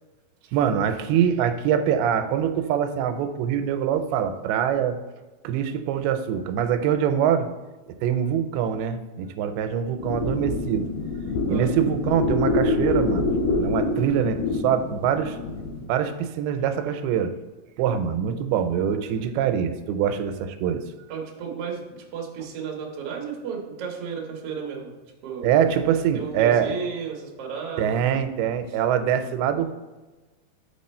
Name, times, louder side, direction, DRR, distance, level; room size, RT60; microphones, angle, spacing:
voice 1, 0.5-5.0 5.4-7.5 8.0-10.9 11.5-13.3 13.6-15.4 15.9-17.3 17.8-20.8 25.4-26.8 27.8-29.7, right 8 dB, 90° right, 9 dB, 2.5 m, -24 dB
sound 1, 10.0-15.9, left 3 dB, 80° left, 2.7 m, -26 dB
voice 2, 21.1-24.9 25.2-25.6 26.1-28.0, right 6 dB, 65° right, 0 dB, 1.5 m, -33 dB
6.1 x 5.8 x 4.2 m, 1.2 s
omnidirectional pair, 4.4 m